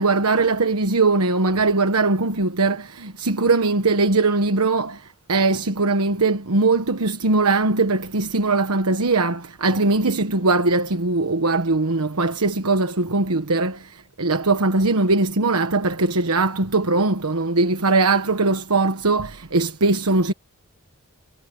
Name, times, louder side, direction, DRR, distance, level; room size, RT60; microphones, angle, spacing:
voice 1, 0.0-20.3, right 3 dB, 75° right, 1.3 m, -20 dB
head